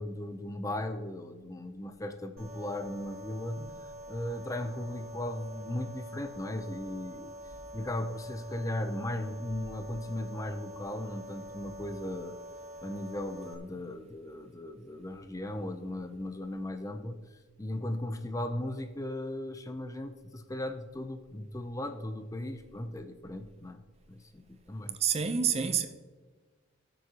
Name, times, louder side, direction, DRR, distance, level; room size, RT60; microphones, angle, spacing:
voice 1, 0.0-7.3 7.7-12.4 12.8-23.8 24.1-25.0, left 1 dB, 15° left, 0.6 m, -37 dB
Filtered sawtooth, 2.4-13.5, equal, 85° right, 2.0 m, -46 dB
voice 2, 25.0-25.9, right 7 dB, 30° right, 0.6 m, -27 dB
19.0 x 7.9 x 2.9 m
head